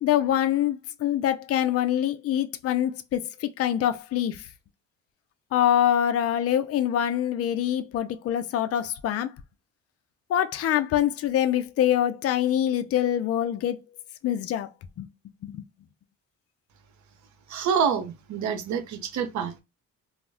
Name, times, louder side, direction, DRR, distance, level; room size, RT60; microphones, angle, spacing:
voice 1, 0.0-4.4 5.5-9.3 10.3-13.8 14.2-14.7 15.0-15.1 15.4-15.6, left 11 dB, 50° left, 0.4 m, -25 dB
voice 2, 17.5-19.6, right 7 dB, 70° right, 0.7 m, -27 dB
2.3 x 2.1 x 3.3 m
cardioid pair, 90°, 30 cm